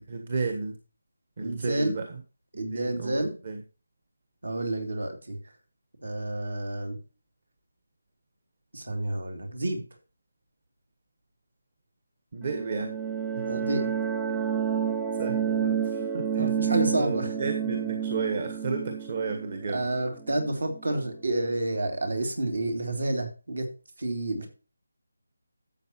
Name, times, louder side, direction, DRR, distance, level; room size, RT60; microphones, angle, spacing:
voice 1, 0.1-0.8 1.4-2.2 2.7-3.6 12.3-13.0 13.3-13.7 15.1-19.9, right 4 dB, 40° right, 6 dB, 1.4 m, -33 dB
voice 2, 1.4-1.9 2.5-3.3 4.4-5.4 6.0-7.0 8.7-9.8 13.4-13.9 16.3-17.3 19.7-23.7 24.0-24.5, right 1 dB, 70° right, 4 dB, 3.1 m, -29 dB
sound 1, 12.4-21.0, right 8 dB, 10° right, 0.5 m, -30 dB
12.5 x 8.0 x 3.1 m, 0.34 s
figure-of-eight pair, 160°, 0 cm